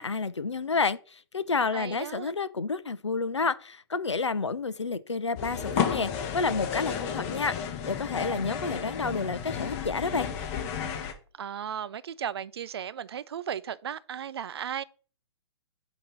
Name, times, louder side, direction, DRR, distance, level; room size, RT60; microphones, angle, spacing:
voice 1, 0.0-10.3, left 4 dB, 90° left, 0.5 m, -30 dB
voice 2, 1.7-2.3 11.4-14.8, right 9 dB, 65° right, 0.5 m, -35 dB
sound 1, 5.4-11.1, left 7 dB, 35° left, 1.1 m, -32 dB
8.5 x 2.9 x 5.5 m
figure-of-eight pair, 120°, 14 cm